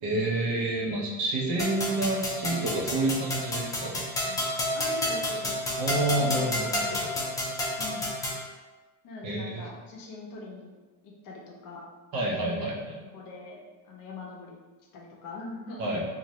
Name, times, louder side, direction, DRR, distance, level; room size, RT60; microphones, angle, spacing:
voice 1, 0.0-4.0 5.8-7.1 9.2-9.7 12.1-12.8 15.8-16.0, right 2 dB, 50° right, -2 dB, 0.9 m, -29 dB
sound 1, 1.6-8.4, left 1 dB, 10° left, 0.3 m, -30 dB
voice 2, 4.2-5.6 6.1-6.5 7.1-7.4 7.8-8.1 9.0-10.8 11.0-11.9 12.5-12.6 13.1-14.6 14.9-15.9, left 3 dB, 40° left, -1 dB, 0.7 m, -42 dB
2.7 x 2.5 x 3.1 m, 1.3 s
supercardioid pair, 110°, 50 cm